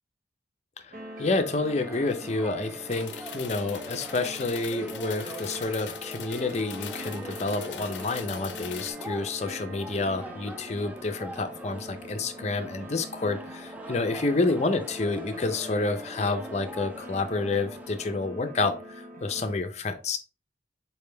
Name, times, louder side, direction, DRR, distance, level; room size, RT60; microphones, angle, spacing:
sound 1, 0.9-19.6, equal, 50° right, 0.9 m, -43 dB
voice 1, 1.2-20.2, left 3 dB, 40° left, 8 dB, 0.6 m, -29 dB
sound 2, 1.7-18.2, right 1 dB, 10° right, 0.3 m, -44 dB
sound 3, 2.9-8.9, left 10 dB, 85° left, 0.5 m, -42 dB
4.4 x 3.5 x 3.3 m, 0.35 s
head